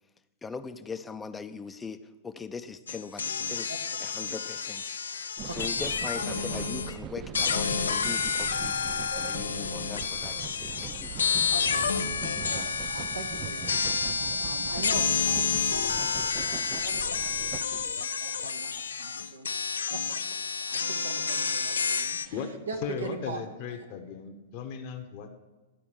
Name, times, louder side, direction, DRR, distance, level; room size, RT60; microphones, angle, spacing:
voice 1, 0.4-3.7 4.0-8.8 9.2-11.2, left 5 dB, 15° left, 10 dB, 0.6 m, -41 dB
sound 1, 2.9-7.0 7.3-22.3, left 6 dB, 80° left, 0.5 m, -30 dB
sound 2, 5.4-17.9, right 10 dB, 30° right, 0.4 m, -41 dB
voice 2, 11.5-19.5 19.9-20.0 20.3-23.5, right 3 dB, 85° right, 4 dB, 1.1 m, -42 dB
voice 3, 22.8-25.3, left 7 dB, 45° left, 3 dB, 1.0 m, -36 dB
11.5 x 4.6 x 7.3 m, 1.2 s
hypercardioid pair, 110°, 0 cm